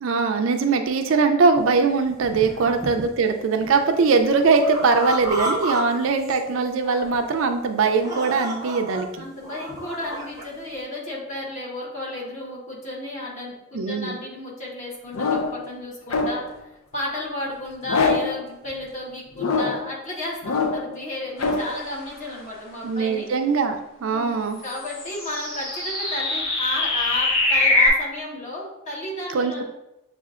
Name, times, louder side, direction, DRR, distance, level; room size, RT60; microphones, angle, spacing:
voice 1, 0.0-9.3 13.7-14.2 22.8-24.6 29.3-29.6, right 4 dB, 75° right, 6 dB, 0.4 m, -21 dB
sound 1, 1.6-1.7 2.1-3.2 3.6-5.8 6.1-6.7 7.1-7.3 7.9-9.0 9.4-10.4, right 1 dB, 15° right, 0.7 m, -32 dB
voice 2, 9.1-16.4 16.9-23.3 24.0-24.3 24.6-29.6, left 1 dB, 35° left, -4 dB, 1.2 m, -33 dB
sound 2, 15.1-15.7 16.1-16.6 17.9-18.4 19.4-19.9 20.4-21.0 21.4-21.7, left 4 dB, 90° left, 0.5 m, -23 dB
sound 3, 24.7-27.9, left 2 dB, 75° left, 1.4 m, -23 dB
7.2 x 2.4 x 2.4 m, 0.90 s
head